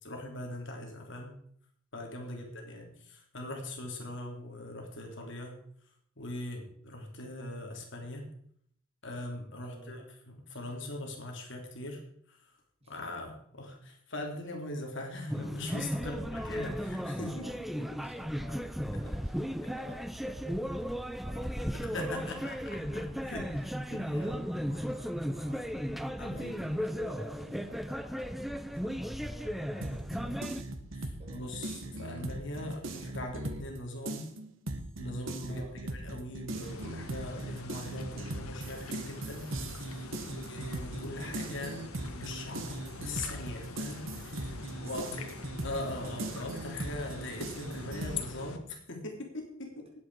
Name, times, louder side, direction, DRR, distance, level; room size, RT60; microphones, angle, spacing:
voice 1, 0.0-1.3 1.9-5.6 6.2-8.3 9.0-12.0 12.3-12.5 12.9-17.5 17.7-17.8 21.9-22.5 22.9-23.5 23.9-24.2 26.2-26.7 30.9-34.2 35.0-35.6 35.9-40.1 40.5-41.8 42.1-44.5 44.8-45.0 45.6-49.8, left 1 dB, 55° left, 1 dB, 3.2 m, -41 dB
voice 2, 9.6-10.1 12.8-12.9 16.0-16.4 17.4-21.7 23.5-23.7 24.0-30.4 31.2-31.6 35.4-35.8 40.1-40.4 44.4-45.4, equal, 30° right, 1 dB, 2.8 m, -50 dB
sound 1, 15.3-30.6, equal, ahead, 0.6 m, -35 dB
sound 2, 29.8-33.8 34.0-48.2, right 2 dB, 65° right, 1.6 m, -39 dB
sound 3, 36.6-48.6, left 3 dB, 85° left, 1.6 m, -44 dB
19.0 x 8.5 x 4.8 m, 0.65 s
head